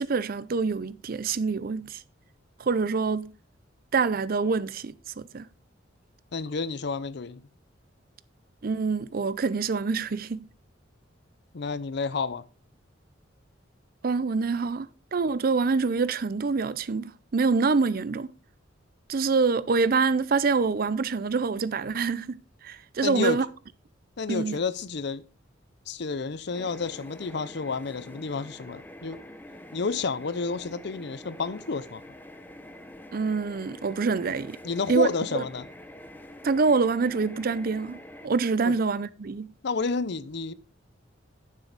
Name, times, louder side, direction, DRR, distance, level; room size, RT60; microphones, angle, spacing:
voice 1, 0.0-2.0 2.6-3.3 3.9-5.5 8.6-10.5 14.0-18.3 19.1-22.4 22.6-23.5 24.3-24.6 33.1-34.6 34.9-35.1 35.3-35.4 36.4-38.0 38.2-39.5, right 4 dB, 50° right, 0.5 m, -26 dB
voice 2, 6.3-7.4 11.5-12.4 23.0-23.4 24.2-25.3 25.9-29.2 29.7-32.0 34.6-35.7 38.7-38.8 39.6-40.5, left 4 dB, 60° left, 0.6 m, -30 dB
sound 1, 26.5-38.3, left 1 dB, 10° left, 0.7 m, -46 dB
9.4 x 7.5 x 4.0 m
head